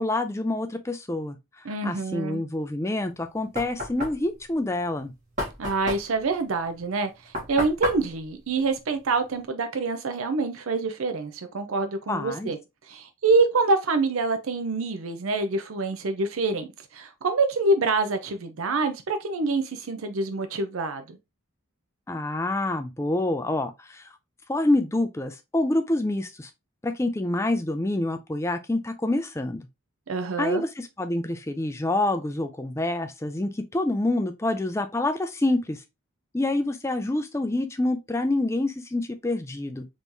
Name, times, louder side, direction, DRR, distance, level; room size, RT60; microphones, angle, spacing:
voice 1, 0.0-1.4 1.8-5.1 12.1-12.5 22.1-24.1 24.5-26.5 26.8-29.6 30.4-35.8 36.3-39.9, left 2 dB, 15° left, 0.4 m, -27 dB
voice 2, 1.6-2.4 5.6-7.1 7.5-12.6 12.9-21.2 30.1-30.6, right 3 dB, 80° right, 0.5 m, -26 dB
Knock, 3.0-9.5, left 1 dB, 35° right, 1.4 m, -34 dB
3.7 x 3.1 x 2.6 m
head